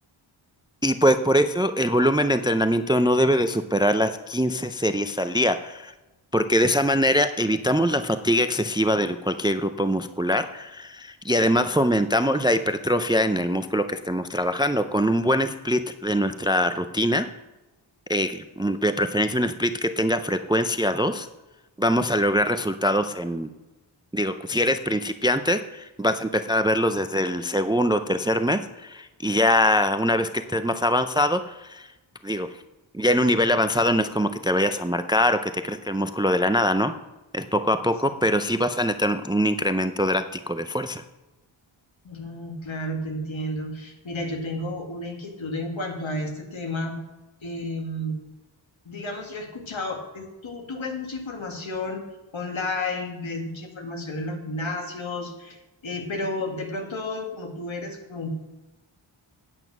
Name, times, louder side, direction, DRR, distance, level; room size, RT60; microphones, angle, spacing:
voice 1, 0.8-5.9 6.3-17.3 18.1-21.3 21.8-23.5 24.1-31.9 32.2-32.5 32.9-36.9 37.3-41.0, equal, 10° right, 10 dB, 0.4 m, -23 dB
voice 2, 42.0-46.9 47.4-48.2 48.9-52.0 52.3-55.6 55.8-58.4, left 1 dB, 70° left, 3 dB, 2.0 m, -32 dB
9.1 x 8.0 x 5.9 m, 1.0 s
wide cardioid pair, 95°, 48 cm